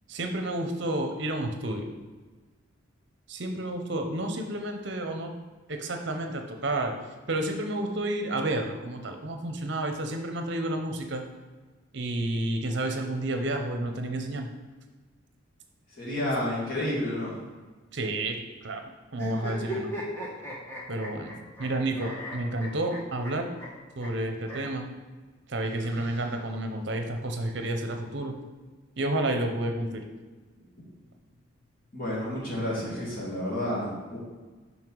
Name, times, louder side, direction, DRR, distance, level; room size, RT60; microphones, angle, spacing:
voice 1, 0.1-1.9 3.3-5.3 5.7-6.9 7.3-11.2 11.9-14.5 17.9-19.9 20.9-23.5 24.0-24.9 25.5-28.3 29.0-30.0, right 1 dB, 55° right, 4 dB, 0.8 m, -30 dB
voice 2, 16.0-17.3 31.9-34.2, left 1 dB, 45° left, -5 dB, 2.2 m, -30 dB
sound 1, 19.1-21.7 22.0-23.3 23.6-23.7 24.0-24.1 24.4-24.6 25.6-26.6, equal, 10° left, 1.2 m, -38 dB
5.7 x 5.4 x 4.6 m, 1.3 s
head